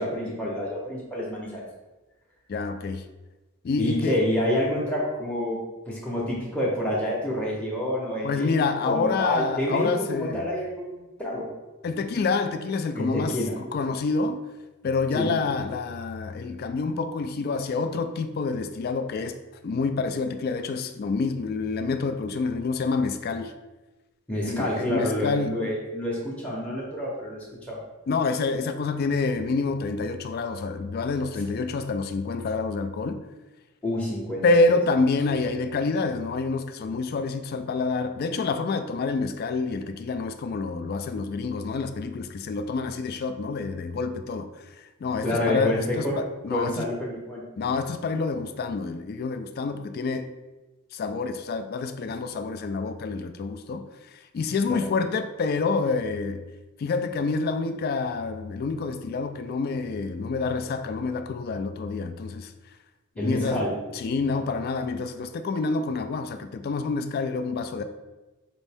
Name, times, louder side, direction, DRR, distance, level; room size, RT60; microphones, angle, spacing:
voice 1, 0.0-1.6 3.8-5.6 5.9-11.5 12.9-13.6 15.1-15.3 24.3-27.8 33.8-34.4 45.2-46.1 46.5-47.4 54.7-54.8 63.2-63.7, left 1 dB, 5° left, 0.7 m, -28 dB
voice 2, 2.5-3.0 3.6-4.2 8.2-10.5 11.8-13.4 13.7-14.4 14.8-19.4 19.6-23.5 24.4-25.6 28.1-33.2 34.4-46.9 47.6-50.3 50.9-53.8 54.1-56.4 56.8-62.5 63.2-63.6 63.9-67.8, left 4 dB, 45° left, 0.3 m, -27 dB
5.2 x 2.6 x 3.4 m
head